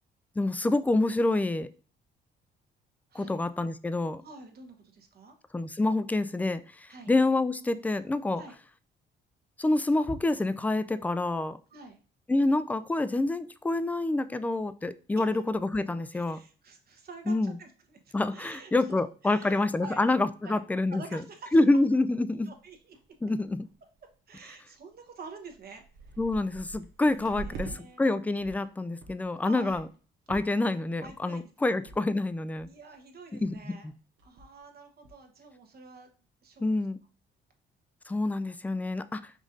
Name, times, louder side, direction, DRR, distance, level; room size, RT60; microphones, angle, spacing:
voice 1, 0.4-1.7 3.1-4.2 5.5-8.4 9.6-11.6 12.3-16.4 17.3-17.5 18.1-21.2 21.5-22.5 23.2-23.7 26.2-29.9 30.3-32.7 33.4-33.8 36.6-37.0 38.1-39.3, left 2 dB, 10° left, 0.3 m, -27 dB
voice 2, 4.2-5.4 6.9-7.1 8.3-8.6 11.7-12.0 15.1-15.5 16.1-20.0 20.4-20.6 20.9-21.6 22.5-23.0 24.3-26.2 27.1-28.0 29.4-29.8 31.0-31.8 32.7-33.9 34.2-36.1 36.4-36.9, right 4 dB, 50° right, 1.1 m, -48 dB
sound 1, 22.7-23.1 23.4-23.7 24.3-24.4 25.1-25.2 25.4-27.8 28.1-28.6 29.0-29.2 29.7-30.0 30.3-30.7 31.0-31.4 31.9-32.0 32.2-32.3 32.6-33.0 33.4-33.6 33.9-34.0 34.2-34.6 35.0-35.1, right 4 dB, 80° right, 1.1 m, -45 dB
5.1 x 2.6 x 3.8 m
cardioid pair, 90°, 20 cm